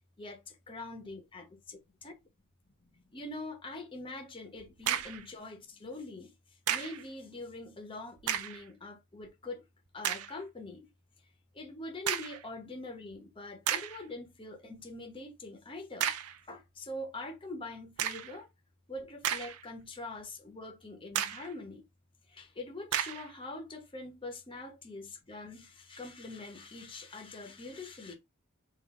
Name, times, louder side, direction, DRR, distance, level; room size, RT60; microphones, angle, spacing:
voice 1, 0.2-1.8 2.0-2.1 3.1-6.3 6.7-9.6 9.9-10.9 11.5-16.1 16.4-18.5 18.9-21.8 22.3-28.1, left 2 dB, 25° left, 0.9 m, -44 dB
sound 1, 4.6-5.3 6.7-7.0 8.2-8.6 9.2-9.3 10.0-10.4 12.1-12.4 13.1-13.2 13.7-14.0 16.0-16.4 18.0-18.4 19.0-19.8 20.2-20.3 21.1-21.5 22.9-23.3, right 10 dB, 70° right, 0.4 m, -33 dB
3.9 x 2.6 x 3.6 m
head